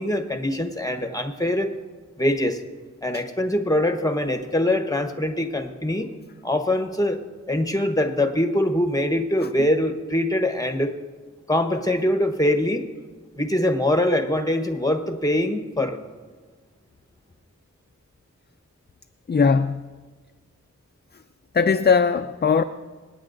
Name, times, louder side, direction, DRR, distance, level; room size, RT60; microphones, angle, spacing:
voice 1, 0.0-1.7 2.2-2.6 3.0-6.1 6.4-7.2 7.5-10.9 11.5-12.8 13.4-16.0, left 1 dB, 10° left, 6 dB, 1.1 m, -23 dB
voice 2, 9.4-9.7 19.3-19.9 21.5-22.6, left 5 dB, 35° left, 9 dB, 0.4 m, -20 dB
26.0 x 9.7 x 2.6 m, 1.4 s
wide cardioid pair, 45°, 30 cm